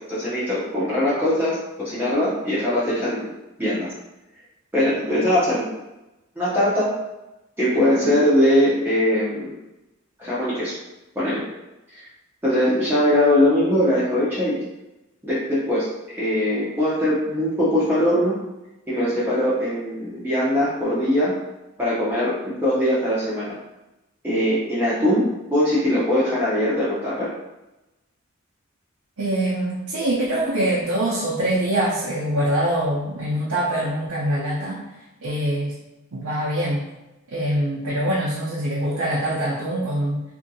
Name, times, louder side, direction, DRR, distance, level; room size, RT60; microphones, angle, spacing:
voice 1, 0.1-3.3 3.6-3.9 4.7-5.7 6.4-6.9 7.6-9.5 10.2-10.7 11.1-11.4 12.4-14.6 15.2-15.9 16.2-18.4 18.9-21.3 21.8-23.5 24.2-27.3, left 1 dB, 10° right, -10 dB, 0.6 m, -21 dB
voice 2, 29.2-34.9 35.2-35.8 36.1-36.8 37.3-40.2, right 1 dB, 85° right, -7 dB, 0.6 m, -24 dB
2.7 x 2.6 x 2.6 m, 0.99 s
head